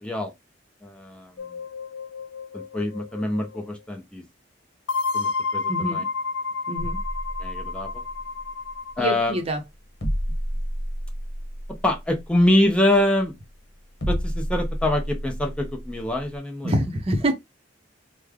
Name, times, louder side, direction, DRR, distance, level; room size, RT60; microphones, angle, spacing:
voice 1, 0.0-0.3 0.8-1.3 2.5-4.2 5.1-6.0 7.4-7.9 9.0-9.4 11.8-13.3 14.1-16.7, left 1 dB, 5° left, 0.7 m, -24 dB
sound 1, 1.4-3.7 4.9-9.1, left 4 dB, 85° left, 0.4 m, -30 dB
voice 2, 5.7-6.0 6.7-7.0 9.0-9.6 16.6-17.3, right 1 dB, 35° right, 0.8 m, -25 dB
sound 2, 6.8-16.4, equal, 60° left, 1.0 m, -32 dB
3.2 x 2.1 x 3.6 m
head